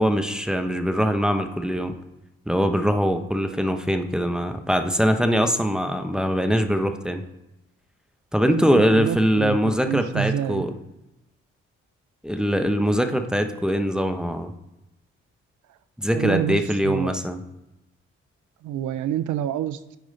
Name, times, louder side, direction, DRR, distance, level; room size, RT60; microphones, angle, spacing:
voice 1, 0.0-1.9 2.5-7.2 8.3-10.7 12.2-14.5 16.0-17.4, equal, ahead, 7 dB, 0.9 m, -22 dB
voice 2, 8.5-10.6 16.1-17.3 18.6-20.0, right 10 dB, 70° right, 14 dB, 0.5 m, -28 dB
9.2 x 4.9 x 4.0 m, 0.94 s
hypercardioid pair, 40°, 32 cm